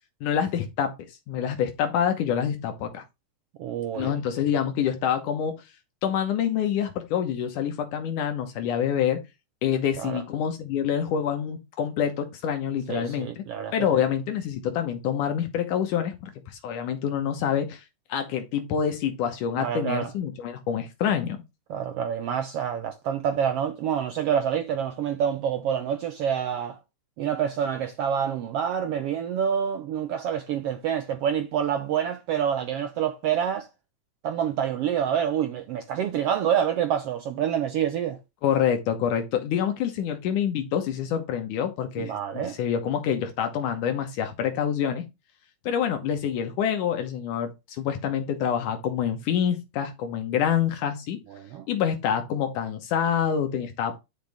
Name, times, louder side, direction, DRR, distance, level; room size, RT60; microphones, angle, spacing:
voice 1, 0.2-0.9 1.3-3.0 4.0-5.6 6.0-9.2 9.6-13.4 13.7-17.8 18.1-21.4 38.4-45.0 45.7-51.2 51.7-54.0, left 8 dB, 75° left, 2.5 m, -26 dB
voice 2, 3.6-4.2 10.0-10.2 12.9-14.0 19.6-20.1 21.7-26.8 27.2-33.7 34.2-38.2 42.0-42.6 51.3-51.6, right 8 dB, 80° right, 1.3 m, -27 dB
10.0 x 5.2 x 3.4 m
omnidirectional pair, 3.7 m